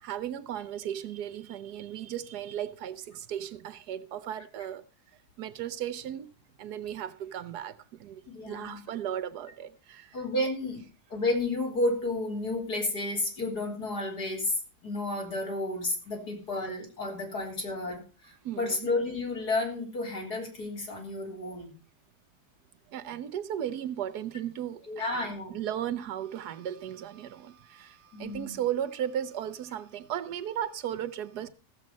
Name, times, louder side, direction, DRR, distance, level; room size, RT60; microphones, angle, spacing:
voice 1, 0.0-4.8 5.4-6.3 6.6-10.2 18.4-18.9 22.9-31.5, right 10 dB, 85° right, 1.4 m, -36 dB
voice 2, 8.3-8.8 10.1-10.8 11.1-14.6 14.8-21.7 24.9-25.6 28.1-28.6, left 2 dB, 85° left, 4.1 m, -31 dB
15.5 x 7.6 x 5.2 m
omnidirectional pair, 1.7 m